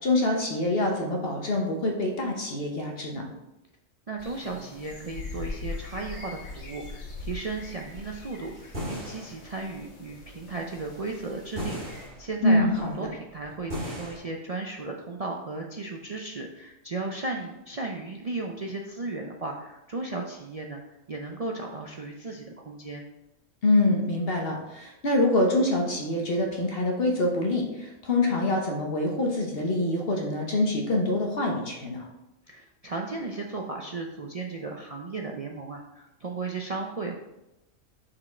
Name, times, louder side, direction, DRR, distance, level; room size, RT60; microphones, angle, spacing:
voice 1, 0.0-3.3 12.4-13.1 23.6-32.1, left 2 dB, 50° left, 1 dB, 1.2 m, -25 dB
voice 2, 4.1-20.8 21.1-23.0 32.5-37.2, right 3 dB, 60° right, 0 dB, 0.4 m, -35 dB
sound 1, 4.2-12.1, left 3 dB, 85° left, 1.8 m, -41 dB
sound 2, 8.2-14.2, equal, 45° right, 2.6 m, -39 dB
6.0 x 4.9 x 4.3 m, 0.95 s
omnidirectional pair, 1.4 m